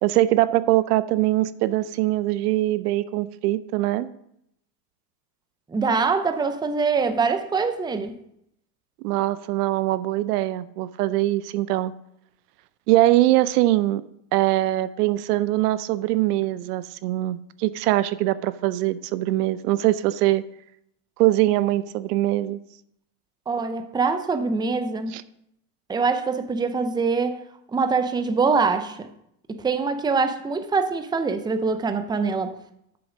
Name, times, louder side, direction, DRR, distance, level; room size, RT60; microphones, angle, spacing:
voice 1, 0.0-4.1 9.0-11.9 12.9-14.0 14.3-20.4 21.2-22.6 25.1-25.2, right 16 dB, 75° right, 0.7 m, -22 dB
voice 2, 5.7-8.2 23.5-25.1 25.9-27.4 27.7-29.1 29.5-32.6, right 4 dB, 10° right, 0.6 m, -24 dB
7.8 x 6.9 x 5.0 m
hypercardioid pair, 100°, 47 cm